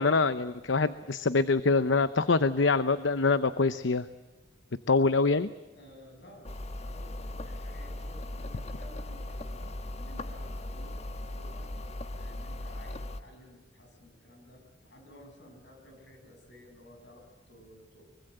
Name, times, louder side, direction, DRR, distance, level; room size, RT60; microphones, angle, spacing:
voice 1, 0.0-4.1 4.9-5.5, left 3 dB, 85° left, 13 dB, 0.8 m, -25 dB
voice 2, 5.7-11.7 12.1-18.0, left 1 dB, 70° left, 5 dB, 7.6 m, -54 dB
sound 1, 6.4-13.2, left 1 dB, 35° left, 1.4 m, -38 dB
24.5 x 23.5 x 7.9 m, 1.2 s
head